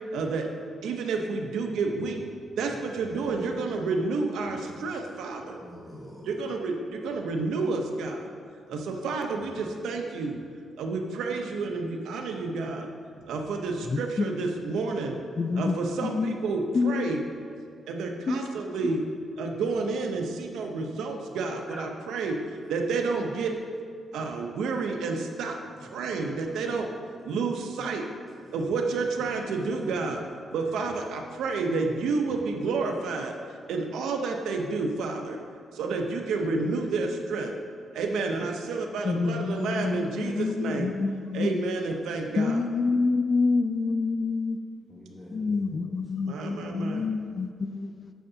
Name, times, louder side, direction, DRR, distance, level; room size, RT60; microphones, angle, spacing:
voice 1, 0.1-0.5 0.8-2.2 2.6-5.6 6.2-8.3 8.7-10.4 10.8-12.9 13.3-15.2 15.5-17.2 17.9-19.0 19.4-22.4 22.7-23.5 24.1-25.6 25.9-26.9 27.2-28.0 28.5-30.2 30.5-33.3 33.7-35.4 35.7-37.5 37.9-40.9 41.3-42.6 46.2-47.1, right 3 dB, 90° right, 2 dB, 0.7 m, -30 dB
voice 2, 2.7-3.6 4.4-5.0 5.4-6.3 21.3-21.9 25.9-26.2 27.3-27.4 27.9-28.0 28.4-28.5 44.9-45.8, left 1 dB, 10° left, -5 dB, 1.1 m, -46 dB
voice 3, 13.9-14.3 15.4-15.8 16.0-16.4 16.7-17.1 18.3-18.4 18.8-18.9 39.0-41.6 42.4-44.6 45.3-48.1, left 4 dB, 40° left, 8 dB, 0.3 m, -27 dB
9.2 x 6.7 x 2.8 m, 2.3 s
cardioid pair, 100°, 0 cm